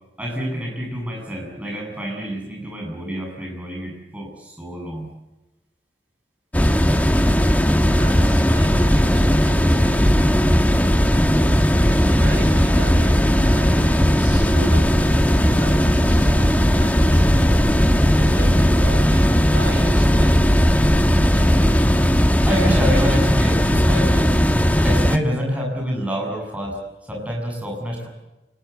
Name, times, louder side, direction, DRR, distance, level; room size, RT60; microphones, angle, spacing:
voice 1, 0.2-5.1 22.1-24.3 24.8-26.8 27.1-28.1, equal, 5° right, -1 dB, 7.5 m, -27 dB
sound 1, 6.5-25.2, equal, 10° left, 1.3 m, -17 dB
voice 2, 8.0-10.2 11.7-14.9 15.3-17.8 18.1-20.3 21.0-21.7, right 1 dB, 65° right, 4 dB, 6.1 m, -36 dB
sound 2, 14.3-22.3, left 1 dB, 80° left, 2.8 m, -33 dB
29.0 x 20.5 x 8.2 m, 1.0 s
head